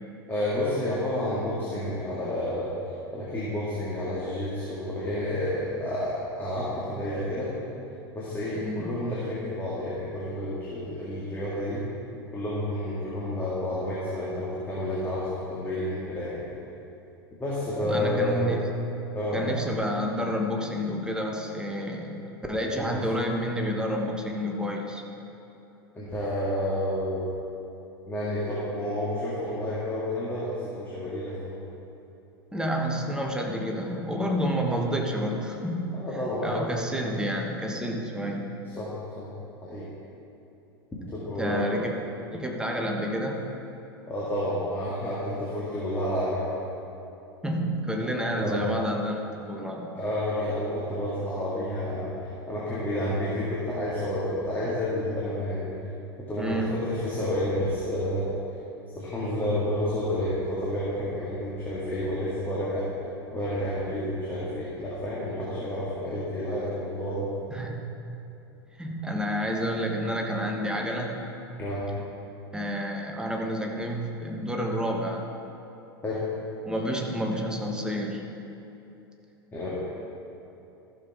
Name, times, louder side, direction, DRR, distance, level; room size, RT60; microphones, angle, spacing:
voice 1, 0.3-2.7 3.1-7.5 8.1-11.8 12.3-16.4 17.4-18.4 19.1-19.4 22.6-22.9 26.0-27.2 28.1-31.5 34.7-34.8 35.9-36.7 38.7-39.3 39.6-39.9 41.1-41.6 44.1-46.4 48.4-48.6 49.9-52.1 52.5-55.7 56.2-58.2 59.0-62.9 63.3-67.3 71.6-71.8 76.0-76.2 79.5-79.8, left 1 dB, 15° left, -8 dB, 2.1 m, -30 dB
voice 2, 8.5-9.0 17.8-18.6 19.3-22.2 22.5-25.0 32.5-38.5 41.4-42.0 42.3-43.4 47.4-49.9 56.4-56.7 67.5-67.8 68.8-71.2 72.5-75.2 76.6-78.2, equal, 5° right, 0 dB, 1.2 m, -29 dB
14.0 x 7.0 x 3.8 m, 2.9 s
figure-of-eight pair, 85°, 13 cm